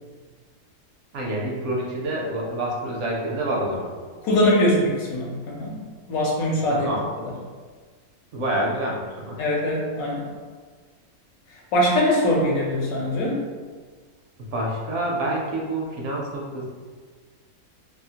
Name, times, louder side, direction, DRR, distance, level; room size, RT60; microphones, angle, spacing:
voice 1, 1.1-3.9 6.7-7.0 8.3-9.4 14.4-16.6, right 1 dB, 65° right, -3 dB, 0.8 m, -27 dB
voice 2, 4.2-5.8 6.1-6.9 9.4-10.3 11.5-13.4, left 1 dB, 80° left, -3 dB, 1.1 m, -22 dB
2.7 x 2.3 x 2.7 m, 1.5 s
omnidirectional pair, 1.5 m